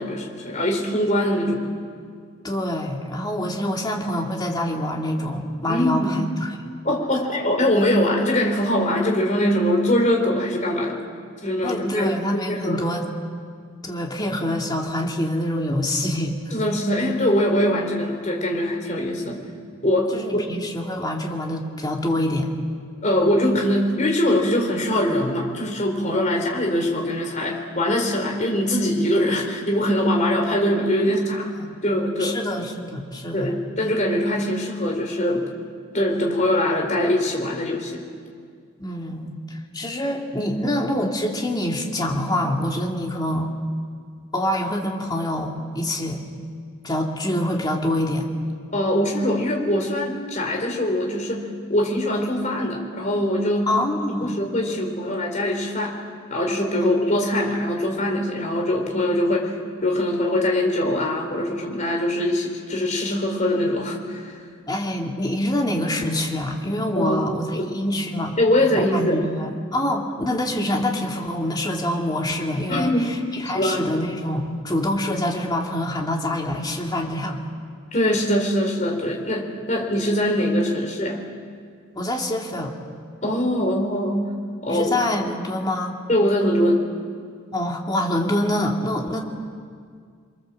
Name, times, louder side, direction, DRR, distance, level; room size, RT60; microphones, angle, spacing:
voice 1, 0.0-1.6 5.7-6.2 6.8-11.0 11.4-12.8 16.5-19.4 19.8-20.4 23.0-31.5 31.8-32.4 33.3-35.4 35.9-38.0 48.7-53.8 54.1-56.0 56.3-59.5 59.8-64.4 67.0-67.2 67.5-67.8 68.4-69.2 72.7-73.1 73.5-73.8 77.9-81.2 83.2-84.2 84.6-85.0 86.1-86.8, left 1 dB, 35° left, 1 dB, 4.2 m, -22 dB
voice 2, 2.4-6.6 11.6-13.1 13.8-16.4 20.1-22.5 31.1-31.2 31.6-31.8 32.2-33.6 38.8-43.5 44.3-46.2 46.8-48.3 53.7-54.4 64.7-68.4 68.8-77.4 81.9-82.7 84.7-85.9 87.5-89.2, left 1 dB, 20° left, 0 dB, 2.6 m, -26 dB
29.0 x 23.5 x 7.5 m, 2.1 s
head